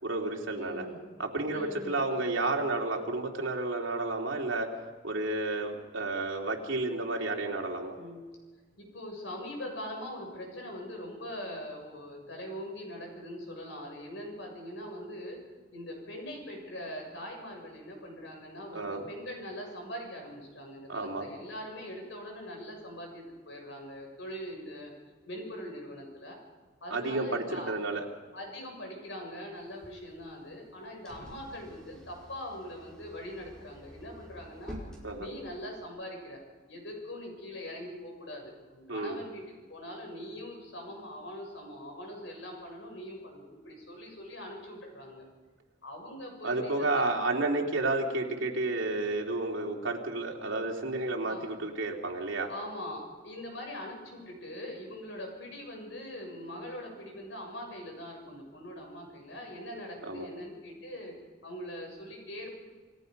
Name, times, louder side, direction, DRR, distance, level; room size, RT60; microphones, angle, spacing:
voice 1, 0.0-0.9 1.2-4.7 5.0-7.9 18.7-19.1 20.9-21.3 26.9-28.0 35.0-35.3 38.9-39.2 46.4-52.5 60.1-60.3, right 2 dB, 75° right, 0 dB, 3.2 m, -31 dB
voice 2, 0.5-1.0 1.5-2.0 8.0-8.2 8.8-15.4 15.7-24.9 25.2-26.4 26.8-27.8 28.3-34.8 35.2-36.4 36.7-39.4 39.7-45.3 45.8-47.0 51.3-51.4 52.5-61.1 61.4-62.5, equal, 70° left, 1 dB, 7.1 m, -42 dB
sound 1, 29.6-35.8, equal, 5° left, 5.0 m, -49 dB
29.0 x 17.5 x 5.4 m, 1.4 s
head